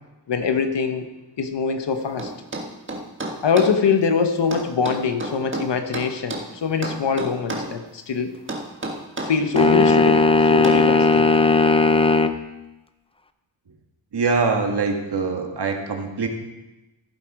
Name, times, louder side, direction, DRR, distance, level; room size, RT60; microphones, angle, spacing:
voice 1, 0.3-1.1 1.4-2.3 3.4-8.3 9.2-11.3, left 6 dB, 80° left, 7 dB, 1.2 m, -23 dB
sound 1, 2.2-3.8 4.5-6.5 6.8-7.7 8.5-9.7 10.6-10.9, right 2 dB, 30° right, 1.6 m, -30 dB
sound 2, 9.6-12.4, left 3 dB, 15° left, 0.5 m, -17 dB
voice 2, 14.1-16.3, right 4 dB, 65° right, 3 dB, 1.8 m, -23 dB
15.0 x 7.8 x 4.8 m, 1.0 s
wide cardioid pair, 95°, 42 cm